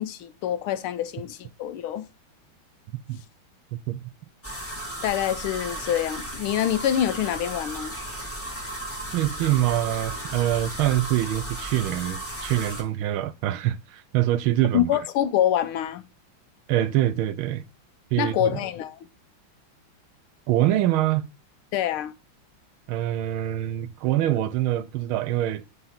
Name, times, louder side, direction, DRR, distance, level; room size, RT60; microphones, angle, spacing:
voice 1, 0.0-2.1 5.0-8.0 14.7-16.0 18.2-19.0 21.7-22.1, left 11 dB, 90° left, 1.6 m, -26 dB
sound 1, 4.4-12.8, right 1 dB, 5° left, 1.7 m, -35 dB
voice 2, 9.1-14.9 16.7-17.7 18.1-18.5 20.5-21.3 22.9-25.6, right 13 dB, 80° right, 1.4 m, -24 dB
8.0 x 4.0 x 5.7 m
omnidirectional pair, 2.3 m